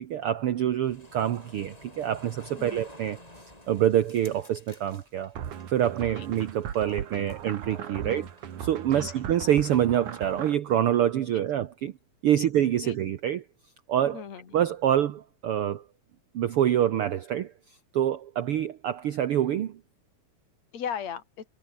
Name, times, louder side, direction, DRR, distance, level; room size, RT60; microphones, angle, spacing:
voice 1, 0.0-3.2 3.7-5.3 5.7-8.2 8.6-11.9 12.2-13.4 13.9-14.2 14.5-15.8 16.3-17.5 17.9-19.7, right 10 dB, 60° right, 1.6 m, -26 dB
sound 1, 0.8-9.0, left 1 dB, 10° left, 5.5 m, -53 dB
sound 2, 5.4-10.6, right 9 dB, 85° right, 3.5 m, -38 dB
voice 2, 8.9-9.3 12.4-12.5 12.8-13.0 14.0-14.6 20.7-21.5, left 8 dB, 60° left, 4.1 m, -38 dB
omnidirectional pair, 3.4 m